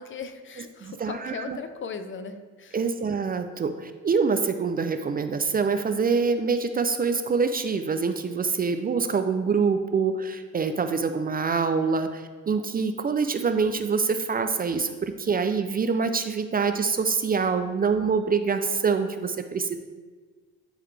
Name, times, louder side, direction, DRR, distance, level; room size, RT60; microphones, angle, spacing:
voice 1, 0.0-2.8, left 5 dB, 40° left, 9 dB, 0.6 m, -38 dB
voice 2, 0.8-1.6 2.7-19.8, right 5 dB, 30° right, 8 dB, 0.4 m, -25 dB
11.0 x 3.9 x 3.3 m, 1.4 s
cardioid pair, 90°, 30 cm